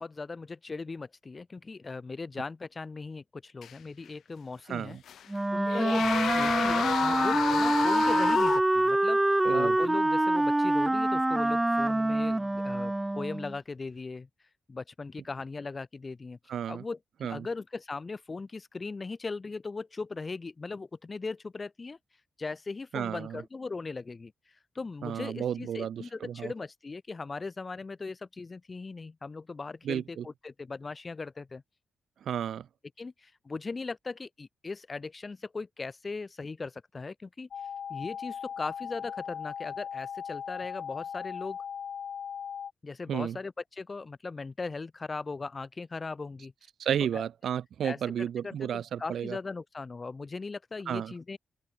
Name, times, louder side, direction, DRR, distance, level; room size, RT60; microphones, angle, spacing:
voice 1, 0.0-5.0 5.3-9.2 9.5-14.3 14.7-16.4 16.7-22.0 22.4-24.3 24.7-31.6 33.0-37.5 37.9-41.6 42.8-46.5 47.1-47.2 47.8-48.0 48.4-51.4, left 3 dB, 25° left, 1.6 m, -39 dB
sound 1, 3.6-3.7 5.1-5.2 5.7-8.6, left 9 dB, 75° left, 0.5 m, -30 dB
voice 2, 4.7-5.0 9.4-9.8 16.5-16.8 17.2-17.5 22.9-23.4 25.0-26.5 29.8-30.2 32.2-32.7 43.1-43.4 46.8-49.4 50.9-51.1, right 9 dB, 65° right, 1.5 m, -32 dB
Wind instrument woodwind instrument, 5.3-13.6, right 1 dB, 10° right, 0.3 m, -26 dB
sound 2, 37.5-42.7, left 8 dB, 55° left, 1.3 m, -38 dB
open air
wide cardioid pair, 160°, 0 cm